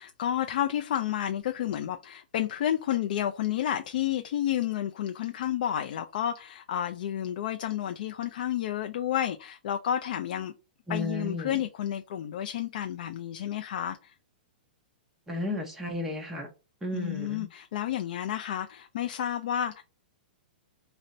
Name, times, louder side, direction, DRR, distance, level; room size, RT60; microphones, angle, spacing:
voice 1, 0.0-10.5 10.9-14.1 16.9-19.8, left 11 dB, 60° left, 0.4 m, -31 dB
voice 2, 10.9-11.6 15.3-16.5 16.8-17.5, left 1 dB, 5° right, 0.7 m, -33 dB
5.3 x 2.1 x 2.5 m
hypercardioid pair, 155°, 5 cm